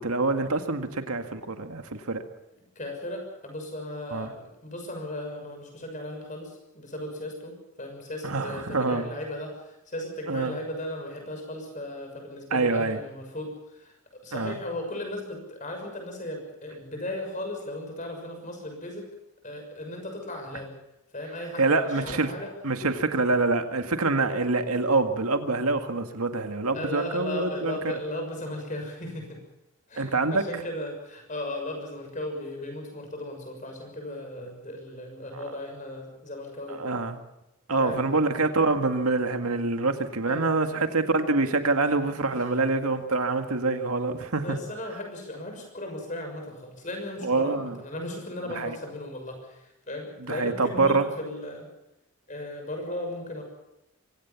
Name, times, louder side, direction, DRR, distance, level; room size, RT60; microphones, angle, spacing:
voice 1, 0.0-2.2 4.1-4.3 8.2-9.1 10.3-10.6 12.5-13.0 14.3-14.6 21.6-22.4 22.6-27.8 30.0-30.4 35.3-35.5 36.7-37.2 37.7-44.6 47.2-47.7 48.5-48.8 50.2-51.1, right 3 dB, 85° right, 7 dB, 1.9 m, -26 dB
voice 2, 2.7-19.1 19.4-20.7 21.1-22.5 26.7-29.4 29.9-36.8 37.8-38.0 40.3-40.5 42.3-42.5 44.4-51.7 52.3-53.4, left 1 dB, 35° left, 3 dB, 6.4 m, -36 dB
24.0 x 17.5 x 7.1 m, 0.90 s
head